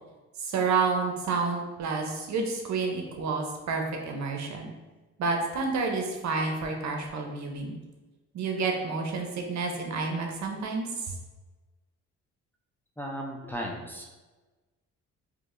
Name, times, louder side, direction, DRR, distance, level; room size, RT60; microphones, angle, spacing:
voice 1, 0.4-4.7 5.2-7.7 8.3-11.2, right 4 dB, 65° right, 2 dB, 0.8 m, -29 dB
voice 2, 13.0-14.1, equal, 5° left, -2 dB, 0.5 m, -36 dB
4.5 x 2.9 x 2.6 m, 1.2 s
cardioid pair, 90°, 30 cm